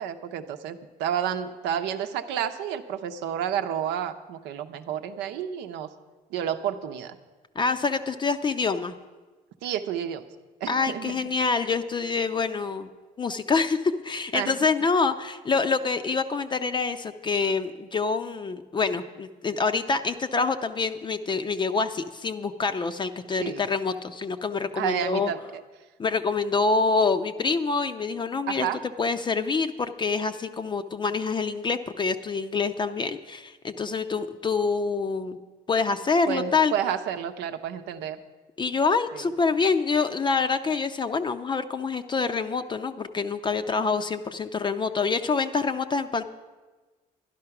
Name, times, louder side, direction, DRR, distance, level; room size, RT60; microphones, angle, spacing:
voice 1, 0.0-5.9 6.3-7.2 9.6-10.3 10.6-11.1 14.3-14.6 23.4-23.6 24.8-25.6 28.5-28.8 36.3-38.2 39.1-39.3, right 9 dB, 90° right, 8 dB, 0.8 m, -30 dB
voice 2, 7.6-8.9 10.7-12.9 13.2-13.8 14.0-25.3 26.0-28.7 29.0-35.4 35.7-36.7 38.6-46.2, left 4 dB, 25° left, 8 dB, 0.5 m, -26 dB
11.5 x 11.0 x 5.8 m, 1.3 s
cardioid pair, 110°, 17 cm